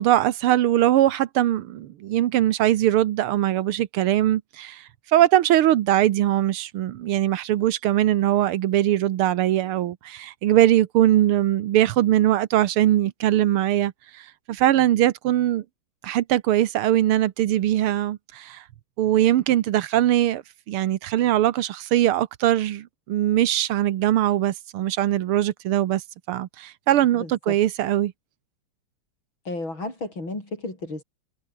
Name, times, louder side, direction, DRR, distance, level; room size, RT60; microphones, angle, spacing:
voice 1, 0.0-15.6 16.0-18.6 19.0-26.0 26.3-28.1, right 13 dB, 90° right, 1.8 m, -21 dB
voice 2, 27.2-27.6 29.5-31.0, left 2 dB, 65° left, 8.8 m, -33 dB
omnidirectional pair, 2.3 m